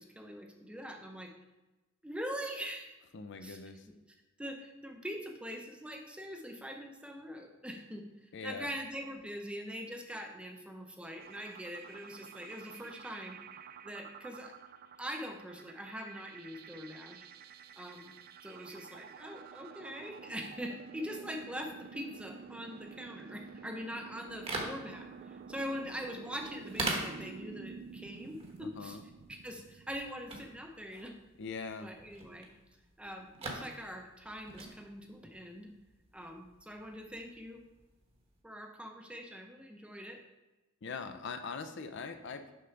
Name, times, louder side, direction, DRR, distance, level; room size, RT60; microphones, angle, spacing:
voice 1, 0.0-1.3 2.0-3.0 3.4-3.6 3.9-4.0 4.4-8.1 8.4-13.4 13.8-14.6 15.0-17.3 17.7-18.1 18.4-29.0 29.3-31.2 31.8-32.5 33.0-35.7 36.1-37.6 38.4-40.2, equal, 5° right, 3 dB, 0.6 m, -43 dB
voice 2, 3.1-3.8 8.3-8.7 28.6-29.0 31.4-31.9 40.8-42.5, left 5 dB, 60° left, 8 dB, 0.5 m, -41 dB
sound 1, 11.2-30.7, right 6 dB, 45° right, 0.3 m, -50 dB
sound 2, 24.2-38.4, right 2 dB, 30° right, 1.0 m, -44 dB
6.5 x 3.8 x 5.8 m, 1.1 s
head